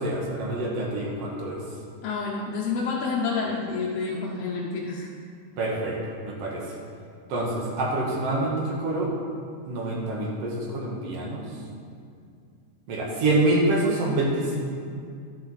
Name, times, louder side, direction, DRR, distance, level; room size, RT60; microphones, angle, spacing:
voice 1, 0.0-1.6 5.6-6.8 7.3-9.1 9.7-11.5 12.9-14.6, right 2 dB, 60° right, -3 dB, 2.1 m, -26 dB
voice 2, 2.0-5.1, left 4 dB, 70° left, -3 dB, 1.7 m, -28 dB
11.5 x 5.8 x 4.0 m, 2.3 s
omnidirectional pair, 3.4 m